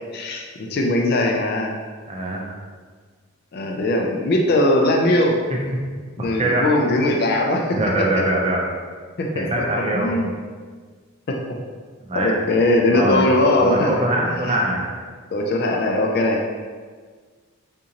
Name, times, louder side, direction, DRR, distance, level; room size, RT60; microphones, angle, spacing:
voice 1, 0.1-1.8 3.5-5.4 6.2-8.0 9.2-9.5 9.9-10.3 11.3-11.6 12.1-14.5 15.3-16.5, left 1 dB, 45° left, 1 dB, 0.3 m, -20 dB
voice 2, 2.1-2.6 5.7-5.8 6.2-6.7 7.7-8.6 9.3-10.1 12.1-12.3 12.9-13.2 13.6-14.8, right 1 dB, 25° right, -1 dB, 0.5 m, -23 dB
3.7 x 2.6 x 2.8 m, 1.5 s
head